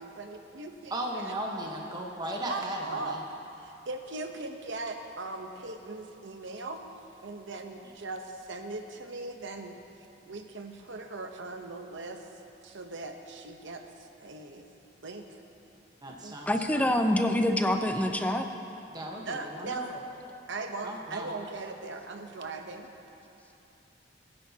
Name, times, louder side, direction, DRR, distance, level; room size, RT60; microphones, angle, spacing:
voice 1, 0.0-1.3 2.5-3.2 3.6-6.9 7.2-9.8 10.3-12.2 12.6-14.7 15.0-15.2 16.2-16.3 19.3-19.9 20.5-22.9, right 3 dB, 70° right, 5 dB, 0.9 m, -39 dB
voice 2, 0.9-3.2 4.9-5.0 16.0-16.5 16.8-17.0 18.9-20.0 20.8-21.3, right 1 dB, 20° right, -1 dB, 1.1 m, -36 dB
voice 3, 16.5-18.5, left 1 dB, 10° left, 5 dB, 0.6 m, -26 dB
21.0 x 9.7 x 2.8 m, 2.9 s
head